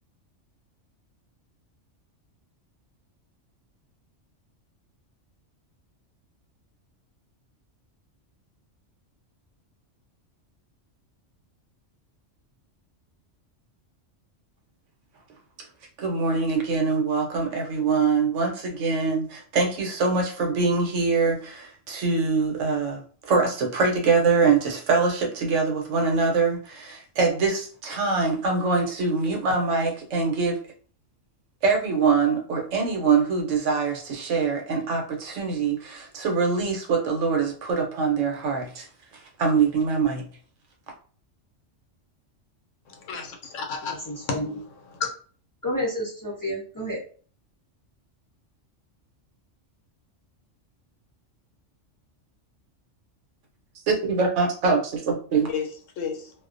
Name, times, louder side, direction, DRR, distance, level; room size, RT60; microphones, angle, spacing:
voice 1, 16.0-30.6 31.6-38.9 39.4-40.3 53.9-55.5, right 4 dB, 75° right, 1.0 m, -24 dB
voice 2, 42.9-44.4 44.9-45.1 55.5-55.7 56.0-56.3, left 5 dB, 90° left, 1.0 m, -32 dB
voice 3, 43.8-44.6 45.6-47.0, equal, 30° left, 0.4 m, -30 dB
2.4 x 2.1 x 2.5 m
omnidirectional pair, 1.3 m